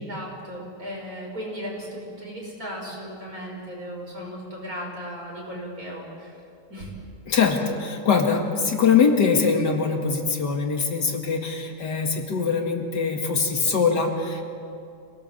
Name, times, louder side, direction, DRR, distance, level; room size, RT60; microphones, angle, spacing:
voice 1, 0.0-6.4 6.7-6.9, equal, 55° right, -2 dB, 6.2 m, -36 dB
voice 2, 7.3-14.4, left 5 dB, 80° left, 3 dB, 2.7 m, -22 dB
26.5 x 18.5 x 7.1 m, 2.5 s
omnidirectional pair, 1.8 m